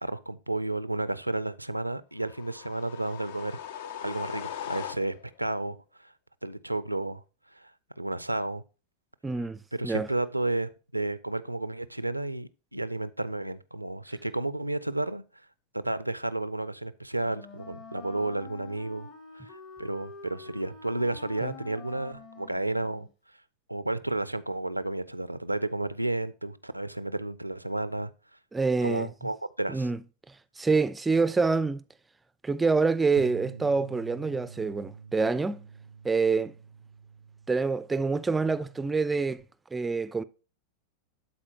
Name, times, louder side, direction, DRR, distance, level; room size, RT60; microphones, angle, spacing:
voice 1, 0.0-3.6 4.0-6.1 6.4-7.2 7.6-7.7 8.0-8.6 9.7-15.2 15.7-19.1 19.3-23.1 23.7-28.1 28.8-29.9, right 2 dB, 85° right, 0.4 m, -32 dB
sound 1, 2.2-5.4, left 9 dB, 55° left, 0.4 m, -39 dB
voice 2, 9.2-10.1 21.4-21.5 28.5-29.1 29.7-30.0 30.6-31.8 32.4-35.6 36.0-36.5 37.5-39.4 39.7-40.2, right 4 dB, 10° right, 0.3 m, -26 dB
Wind instrument woodwind instrument, 17.2-23.1, left 4 dB, 40° left, 1.1 m, -47 dB
Bass guitar, 33.2-39.4, right 6 dB, 90° left, 1.2 m, -47 dB
12.0 x 4.2 x 2.8 m
figure-of-eight pair, 90°, 0 cm